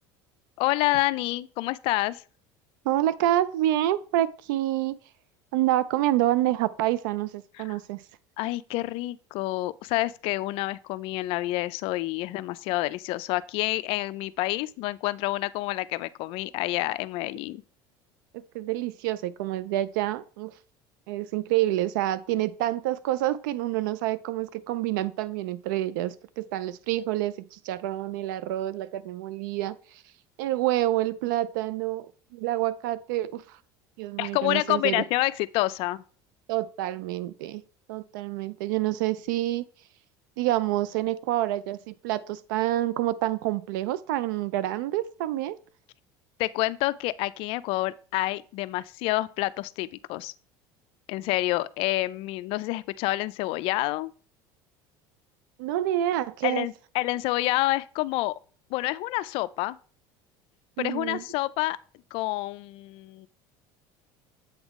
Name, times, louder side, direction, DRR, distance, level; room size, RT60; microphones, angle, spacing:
voice 1, 0.6-2.2 7.6-7.7 8.4-17.6 34.2-36.0 46.4-50.3 51.1-54.1 56.4-58.3 58.7-59.8 60.8-61.8 62.1-63.3, left 18 dB, 60° left, 0.4 m, -28 dB
voice 2, 2.8-5.0 5.5-8.0 18.3-20.5 21.1-29.8 30.4-33.4 34.0-35.0 36.5-37.6 37.9-39.7 40.4-45.6 55.6-56.7 60.8-61.2, right 14 dB, 85° right, 0.4 m, -27 dB
7.9 x 3.7 x 3.6 m
supercardioid pair, 115°, 11 cm